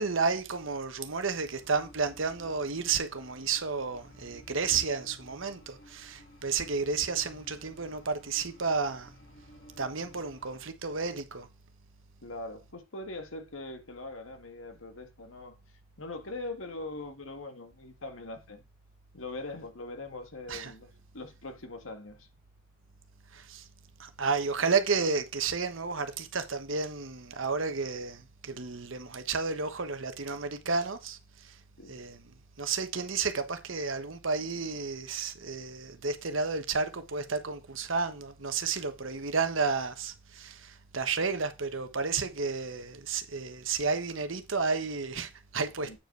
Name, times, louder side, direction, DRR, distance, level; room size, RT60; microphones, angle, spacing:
voice 1, 0.0-9.1 9.8-11.5 20.5-20.7 23.3-23.6 24.0-31.2 31.9-32.2 32.6-46.0, right 4 dB, 75° right, 1.3 m, -32 dB
sound 1, 1.3-10.7, equal, 65° left, 2.5 m, -54 dB
voice 2, 12.2-15.6 16.0-18.6 19.1-22.3 31.8-32.0 45.8-46.0, left 2 dB, 85° left, 1.6 m, -42 dB
8.8 x 5.2 x 4.7 m
head